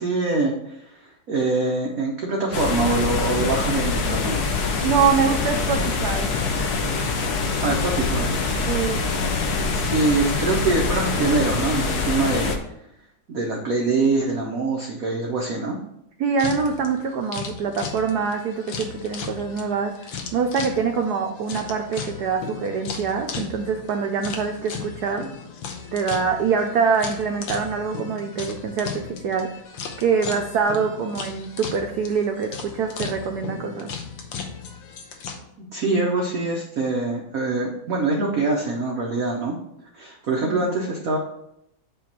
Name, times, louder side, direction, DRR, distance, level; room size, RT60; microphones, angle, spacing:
voice 1, 0.0-4.4 7.6-8.3 9.7-12.6 13.3-15.8 35.6-39.6 39.9-41.2, right 3 dB, 55° right, -1 dB, 1.1 m, -24 dB
sound 1, 2.5-12.6, left 4 dB, 60° left, 1.2 m, -24 dB
voice 2, 4.8-6.3 8.7-9.0 16.2-25.3 25.9-29.5 30.0-33.9 40.5-40.7, right 6 dB, 85° right, 4 dB, 0.8 m, -24 dB
sound 2, 16.4-35.4, left 6 dB, 90° left, 1.9 m, -36 dB
8.7 x 3.1 x 5.9 m, 0.80 s
omnidirectional pair, 2.4 m